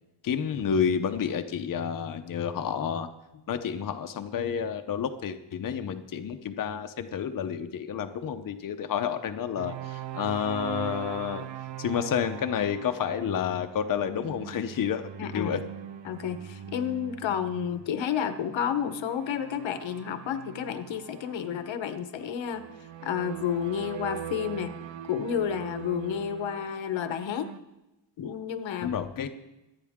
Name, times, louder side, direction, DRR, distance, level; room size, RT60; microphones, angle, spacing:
voice 1, 0.2-3.1 3.5-11.4 11.8-15.1 15.3-15.6 28.8-29.3, left 8 dB, 45° left, 7 dB, 0.8 m, -30 dB
sound 1, 9.6-27.6, right 10 dB, 80° right, 0.8 m, -42 dB
voice 2, 15.2-15.5 16.0-22.7 23.0-24.7 25.1-27.5 28.2-29.3, left 8 dB, 85° left, 9 dB, 1.2 m, -31 dB
24.5 x 9.7 x 3.7 m, 0.98 s
wide cardioid pair, 165°, 44 cm